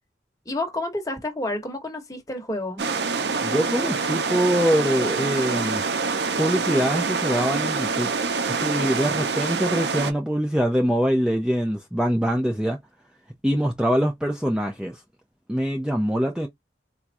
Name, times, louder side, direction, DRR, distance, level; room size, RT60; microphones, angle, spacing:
voice 1, 0.4-2.8, left 2 dB, 20° left, 1.2 m, -29 dB
sound 1, 2.8-10.1, right 4 dB, 65° right, 0.7 m, -26 dB
voice 2, 3.4-5.8 6.4-8.1 8.5-12.8 13.4-15.0 15.5-16.5, equal, 5° right, 0.5 m, -24 dB
4.5 x 2.3 x 2.5 m
head